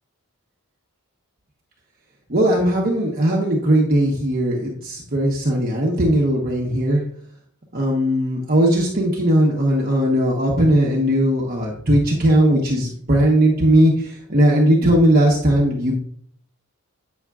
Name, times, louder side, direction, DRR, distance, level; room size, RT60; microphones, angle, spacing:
voice 1, 2.3-7.0 7.7-15.9, right 1 dB, 40° right, -2 dB, 1.1 m, -18 dB
8.8 x 6.3 x 2.4 m, 0.63 s
head